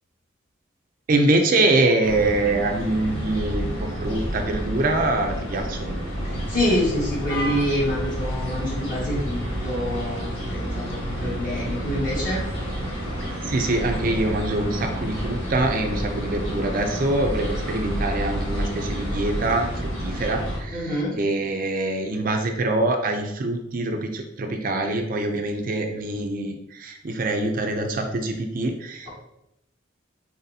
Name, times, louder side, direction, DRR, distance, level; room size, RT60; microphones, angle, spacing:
voice 1, 1.1-6.0 13.2-29.1, right 2 dB, 45° right, 5 dB, 0.4 m, -24 dB
sound 1, 2.0-20.6, equal, 75° left, 1.6 m, -29 dB
voice 2, 6.2-12.4 20.7-21.2, left 1 dB, 45° left, -6 dB, 1.7 m, -26 dB
4.2 x 4.0 x 2.7 m, 0.83 s
head